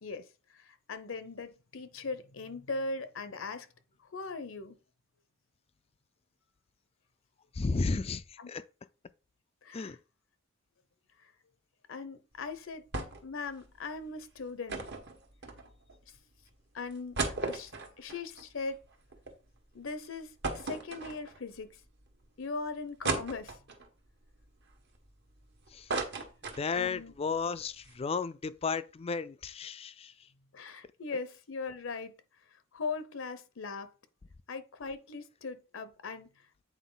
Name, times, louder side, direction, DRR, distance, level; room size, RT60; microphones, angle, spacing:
voice 1, 0.0-3.7 4.0-4.8 8.4-8.5 9.6-9.9 11.2-11.3 11.9-12.9 13.2-14.9 16.1-16.2 16.7-17.7 18.0-18.8 19.7-21.8 22.4-23.6 26.7-27.1 30.5-32.2 32.7-33.9 34.5-36.3, left 4 dB, 70° left, 0.7 m, -39 dB
voice 2, 7.5-8.6 9.7-10.0 25.7-26.0 26.6-30.3, left 4 dB, 30° left, 0.4 m, -34 dB
sound 1, 12.9-13.4 13.6-13.7 14.7-16.0 16.5-16.6 16.9-19.3 19.7-19.8 20.4-21.6 22.1-22.2 23.0-23.9 24.4-25.4 25.7-27.0 27.4-27.5 27.7-27.9, right 3 dB, 55° right, 1.4 m, -36 dB
8.1 x 4.5 x 3.9 m
head